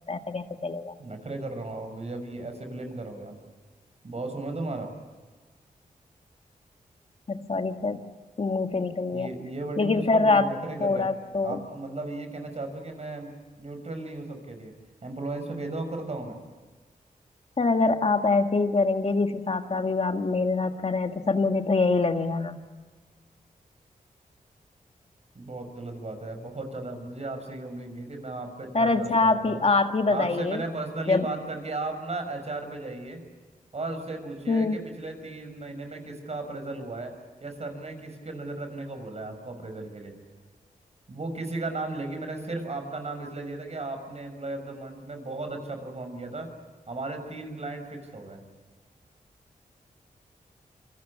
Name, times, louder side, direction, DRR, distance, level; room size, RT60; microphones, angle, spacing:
voice 1, 0.1-0.9 7.3-8.1 8.4-9.3 9.8-10.5 10.8-11.6 17.6-22.6 28.7-30.6 31.1-31.3 34.5-34.8, left 3 dB, 45° left, 6 dB, 1.7 m, -24 dB
voice 2, 1.0-3.4 4.0-4.9 9.1-11.1 11.4-13.3 13.6-14.7 15.0-16.4 25.3-29.6 30.1-33.2 33.7-37.1 37.4-40.2 41.1-46.5 46.9-48.4, right 2 dB, 45° right, 6 dB, 6.3 m, -35 dB
27.5 x 24.5 x 8.7 m, 1.4 s
cardioid pair, 75°, 15 cm